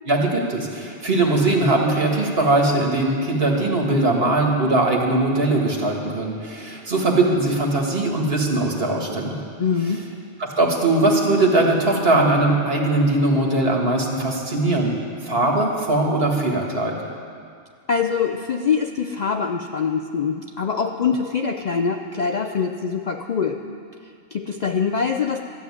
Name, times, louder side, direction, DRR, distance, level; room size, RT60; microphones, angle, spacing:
voice 1, 0.0-9.4 10.6-14.9 15.2-16.9, right 2 dB, 55° right, 0 dB, 1.9 m, -20 dB
voice 2, 9.6-10.0 17.9-23.6 24.0-25.4, left 6 dB, 55° left, 5 dB, 0.5 m, -24 dB
13.5 x 7.4 x 9.6 m, 2.3 s
omnidirectional pair, 1.2 m